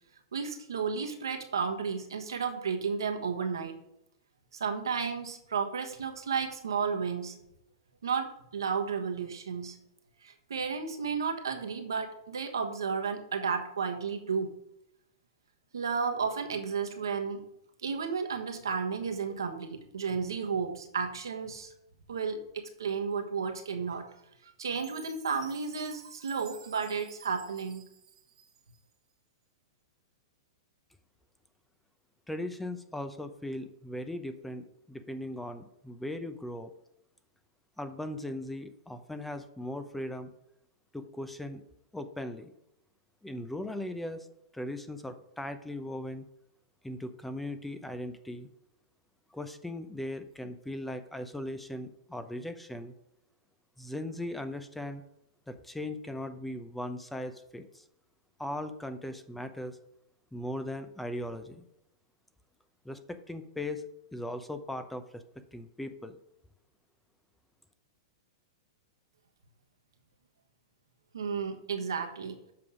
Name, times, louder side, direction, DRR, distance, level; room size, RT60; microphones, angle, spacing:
voice 1, 0.3-3.8 4.5-7.4 8.0-9.8 10.2-14.5 15.7-17.5 17.8-21.7 22.1-24.1 24.4-27.9 71.1-72.4, right 5 dB, 80° right, 5 dB, 1.3 m, -33 dB
Chime, 24.7-28.9, right 8 dB, 25° right, 0.9 m, -53 dB
voice 2, 32.3-36.7 37.8-40.3 40.9-41.6 41.9-42.5 43.2-44.3 44.5-46.3 46.8-48.5 49.3-52.9 53.8-55.0 55.5-57.8 58.4-59.8 60.3-61.6 62.8-63.8 64.1-65.2 65.5-66.2, left 1 dB, 5° left, 9 dB, 0.7 m, -38 dB
7.6 x 5.5 x 4.9 m, 0.81 s
hypercardioid pair, 110°, 2 cm